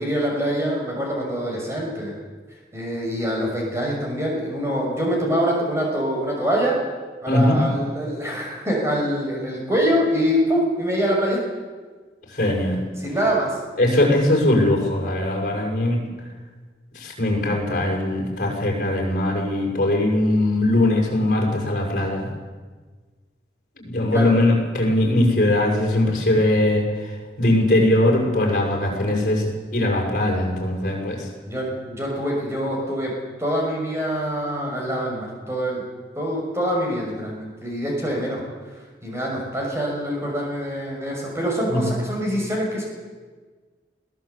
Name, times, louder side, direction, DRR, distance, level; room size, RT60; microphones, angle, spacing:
voice 1, 0.0-2.2 2.7-6.8 7.2-11.4 13.0-13.5 24.1-24.3 31.5-33.1 33.4-35.8 36.2-38.4 39.0-42.8, equal, 15° right, -2 dB, 6.3 m, -24 dB
voice 2, 7.3-7.6 12.3-12.8 13.8-16.0 16.9-22.3 23.8-27.1 27.4-29.5 29.7-31.3 41.7-41.9, left 1 dB, 45° left, 0 dB, 6.6 m, -20 dB
21.5 x 17.0 x 8.5 m, 1.4 s
head